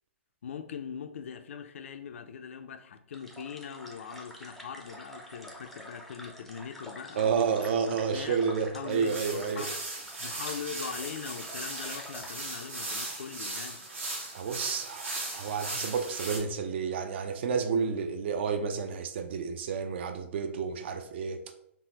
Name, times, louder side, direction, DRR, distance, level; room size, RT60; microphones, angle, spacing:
voice 1, 0.4-7.4 7.8-8.4 8.7-9.7 10.2-13.9, left 7 dB, 80° left, 0.3 m, -41 dB
sound 1, 3.1-12.4, equal, ahead, 0.4 m, -47 dB
voice 2, 7.2-9.7 14.3-21.4, right 6 dB, 55° right, 0.4 m, -30 dB
sound 2, 8.9-16.4, right 2 dB, 75° right, 1.3 m, -38 dB
3.6 x 2.0 x 2.8 m
hypercardioid pair, 140°, 7 cm